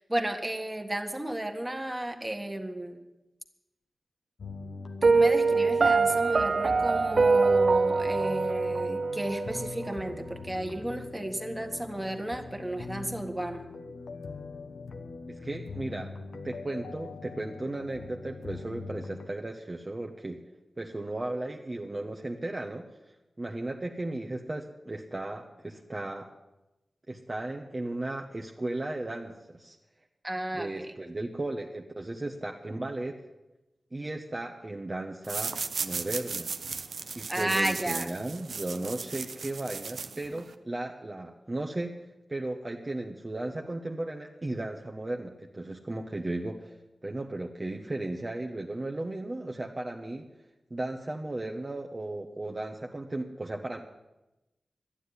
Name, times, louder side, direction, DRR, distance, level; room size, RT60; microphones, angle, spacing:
voice 1, 0.0-3.0 5.0-13.6 30.2-30.9 37.3-38.1, right 1 dB, 15° right, 4 dB, 1.8 m, -33 dB
sound 1, 4.4-19.3, left 4 dB, 85° left, 1.2 m, -42 dB
Piano, 5.0-10.0, right 4 dB, 65° right, 0.4 m, -24 dB
voice 2, 15.3-16.1 16.4-20.4 20.8-22.9 23.4-26.3 27.1-29.8 30.5-33.2 33.9-36.5 37.1-42.0 42.3-50.2 50.7-53.8, right 2 dB, 35° right, 1 dB, 1.1 m, -35 dB
sound 2, 35.2-40.5, right 5 dB, 80° right, 0.8 m, -36 dB
12.0 x 10.0 x 9.9 m, 0.99 s
cardioid pair, 55°, 0 cm